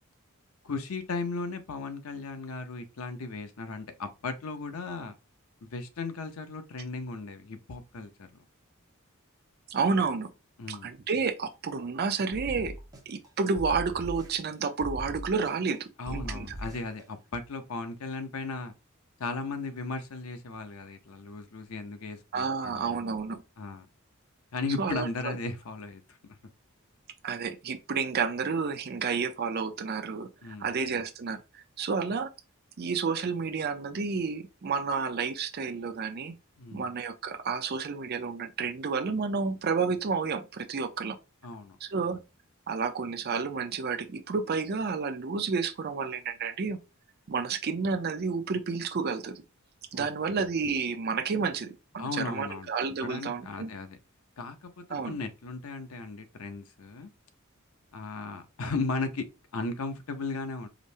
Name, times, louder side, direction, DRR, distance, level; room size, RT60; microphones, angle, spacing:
voice 1, 0.6-5.1 5.6-8.3 10.6-10.9 16.0-18.7 19.2-23.0 23.6-23.9 24.5-26.2 30.4-30.8 36.6-36.9 41.4-41.8 49.9-50.1 52.0-52.7 53.0-54.0 54.4-57.1 57.9-59.3 59.5-60.7, left 3 dB, 85° left, 0.7 m, -36 dB
voice 2, 9.7-10.3 10.7-12.8 13.1-16.5 22.3-23.4 24.8-25.4 27.2-30.3 30.6-32.3 32.8-36.3 36.7-41.2 41.8-42.2 42.7-46.8 47.3-49.4 49.9-53.7 54.9-55.1, right 5 dB, 45° right, 0.5 m, -30 dB
sound 1, 12.3-13.3 13.6-14.5 14.8-15.8 16.1-17.0, equal, 15° right, 0.9 m, -40 dB
5.0 x 2.0 x 2.7 m
head